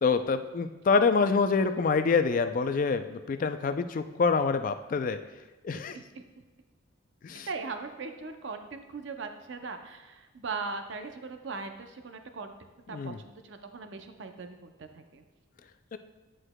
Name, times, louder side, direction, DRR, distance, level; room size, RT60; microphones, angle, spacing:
voice 1, 0.0-5.2 5.6-6.0 7.2-7.5 12.9-13.2 15.9-16.0, left 4 dB, 40° left, 10 dB, 0.3 m, -26 dB
voice 2, 5.7-6.2 7.5-12.5 12.9-15.2, right 4 dB, 60° right, 6 dB, 0.5 m, -39 dB
9.8 x 6.2 x 2.2 m, 1.2 s
head